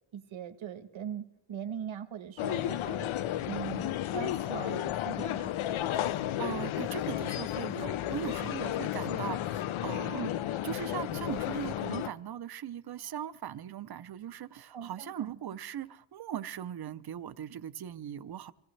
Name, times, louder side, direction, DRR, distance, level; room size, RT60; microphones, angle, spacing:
voice 1, 0.1-3.1 3.5-5.5 10.1-10.3 14.7-15.3, right 8 dB, 70° right, 1.3 m, -40 dB
sound 1, 2.4-12.1, left 12 dB, 75° left, 0.6 m, -33 dB
voice 2, 5.9-10.3 10.6-18.5, right 10 dB, 50° right, 0.6 m, -39 dB
25.0 x 17.5 x 3.2 m
wide cardioid pair, 175°, 49 cm